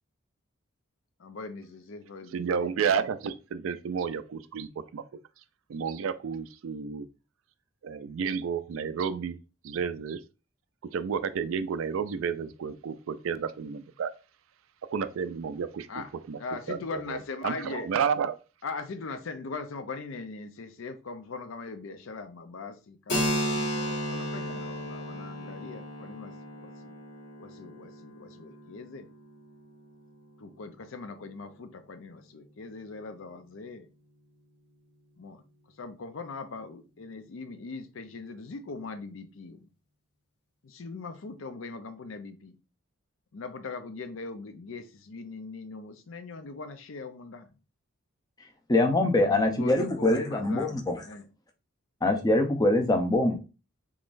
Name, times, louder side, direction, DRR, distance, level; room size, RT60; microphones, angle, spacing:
voice 1, 1.2-2.9 15.9-16.1 16.4-17.9 18.6-27.0 27.4-29.1 30.4-33.9 35.2-35.4 35.8-39.7 40.6-42.6 43.3-47.5 49.2-51.3, left 4 dB, 70° left, 0.5 m, -40 dB
voice 2, 2.3-5.0 5.7-7.1 7.8-9.4 9.6-10.2 10.9-14.1 14.9-16.4 16.7-17.2 17.4-18.4, right 6 dB, 75° right, 0.4 m, -31 dB
Keyboard (musical), 23.1-30.5, equal, 55° left, 1.4 m, -34 dB
voice 3, 48.7-51.0 52.0-53.3, left 2 dB, 20° left, 0.6 m, -24 dB
3.7 x 3.0 x 2.5 m
head